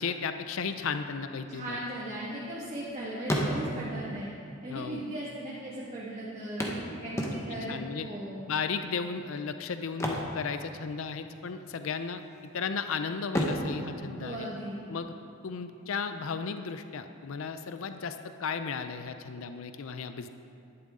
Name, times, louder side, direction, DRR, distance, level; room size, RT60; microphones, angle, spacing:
voice 1, 0.0-1.8 4.7-5.0 7.7-8.1 8.5-12.2 12.5-14.5 14.9-15.1 15.4-20.3, left 5 dB, 70° left, 9 dB, 0.5 m, -35 dB
voice 2, 1.5-4.3 4.6-8.4 14.2-14.9, right 1 dB, 35° right, -8 dB, 1.7 m, -37 dB
sound 1, 1.9-2.9 3.2-4.0 4.9-5.0 5.2-5.3 6.6-7.8 9.8-11.2 11.4-11.7 12.2-12.8 13.2-15.0 17.0-17.1 17.5-17.6, equal, 15° left, 1.1 m, -33 dB
12.0 x 11.0 x 3.7 m, 2.6 s
head